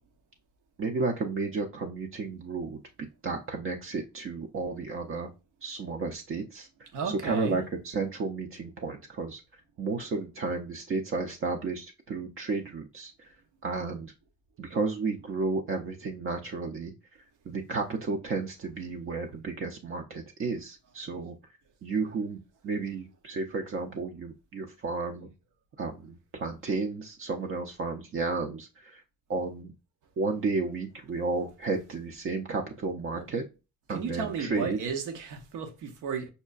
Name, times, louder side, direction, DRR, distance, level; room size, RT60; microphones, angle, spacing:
voice 1, 0.8-2.8 3.2-5.3 5.6-6.7 7.0-9.4 9.8-13.3 13.6-14.1 14.6-16.9 17.5-21.4 21.8-22.4 22.6-25.3 25.8-29.0 29.3-29.7 30.2-33.4 33.9-34.8, right 4 dB, 45° right, 0.5 m, -32 dB
voice 2, 6.9-7.6 33.1-33.3 33.9-36.3, right 5 dB, 85° right, 0.8 m, -34 dB
5.4 x 2.2 x 2.3 m
cardioid pair, 90°, 30 cm